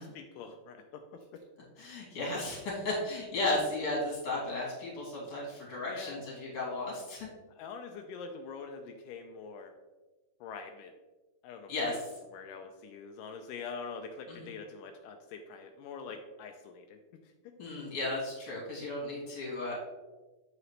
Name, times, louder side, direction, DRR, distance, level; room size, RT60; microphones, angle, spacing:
voice 1, 0.0-1.4 5.9-6.2 7.5-9.7 10.4-10.9 11.4-12.0 12.3-17.6, left 5 dB, 85° left, 4 dB, 1.9 m, -45 dB
voice 2, 1.8-7.3 11.7-12.0 14.3-14.5 17.6-19.7, left 2 dB, 40° left, -4 dB, 3.1 m, -34 dB
7.8 x 5.9 x 3.2 m, 1.2 s
omnidirectional pair, 4.3 m